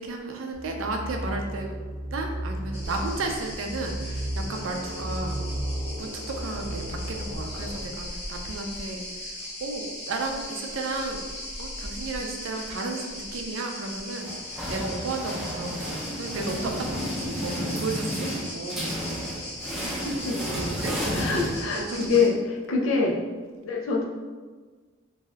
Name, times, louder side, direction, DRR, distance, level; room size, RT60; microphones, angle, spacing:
voice 1, 0.0-1.7 2.1-5.4 6.0-11.2 11.6-19.0 20.7-20.9 21.8-22.3, right 3 dB, 70° right, 3 dB, 0.4 m, -33 dB
sound 1, 0.5-7.8, right 1 dB, 35° right, 0.8 m, -34 dB
sound 2, 2.7-22.3, left 1 dB, 30° left, 0.8 m, -38 dB
sound 3, 14.2-22.1, equal, ahead, 0.4 m, -32 dB
voice 2, 19.8-20.4 21.1-22.4 22.7-23.2 23.6-24.1, left 4 dB, 80° left, -1 dB, 0.5 m, -25 dB
2.6 x 2.2 x 3.2 m, 1.4 s
head